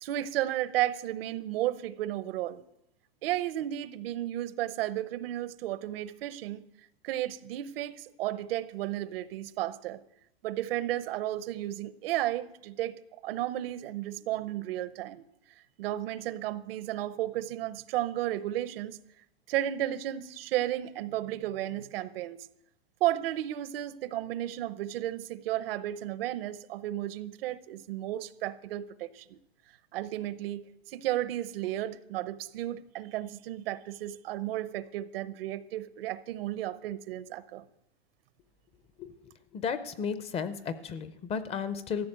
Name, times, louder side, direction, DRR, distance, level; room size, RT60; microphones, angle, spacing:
voice 1, 0.0-2.6 3.2-6.6 7.0-10.0 10.4-13.0 13.2-15.2 15.8-19.0 19.5-22.4 23.0-29.4 29.9-37.6, right 13 dB, 70° right, 16 dB, 0.8 m, -33 dB
voice 2, 39.5-42.1, left 6 dB, 20° left, 13 dB, 0.5 m, -34 dB
14.0 x 6.7 x 8.8 m, 0.83 s
supercardioid pair, 150°, 30 cm